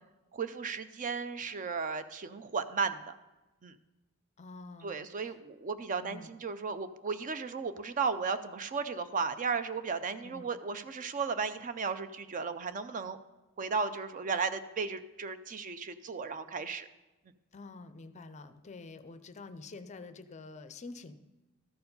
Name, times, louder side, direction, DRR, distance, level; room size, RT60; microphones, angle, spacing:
voice 1, 0.3-3.1 3.6-3.7 4.8-13.2 13.6-16.9, right 5 dB, 40° right, 11 dB, 0.4 m, -35 dB
voice 2, 4.4-5.4 6.0-6.3 10.2-10.5 17.5-21.1, left 3 dB, 35° left, 11 dB, 0.5 m, -47 dB
13.5 x 4.7 x 5.3 m, 1.1 s
head